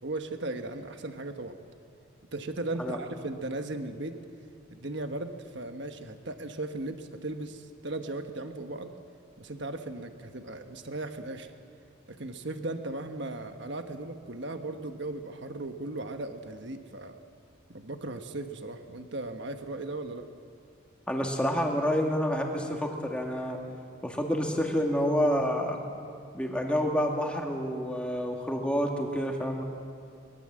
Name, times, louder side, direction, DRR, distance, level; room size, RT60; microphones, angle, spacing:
voice 1, 0.0-1.6 2.3-4.2 4.7-8.9 9.4-11.5 12.1-17.2 17.7-20.3, right 2 dB, 55° right, 7 dB, 1.4 m, -37 dB
voice 2, 21.1-23.6 24.0-25.8 26.3-29.6, equal, 5° left, 1 dB, 2.2 m, -28 dB
23.5 x 21.5 x 7.7 m, 2.3 s
head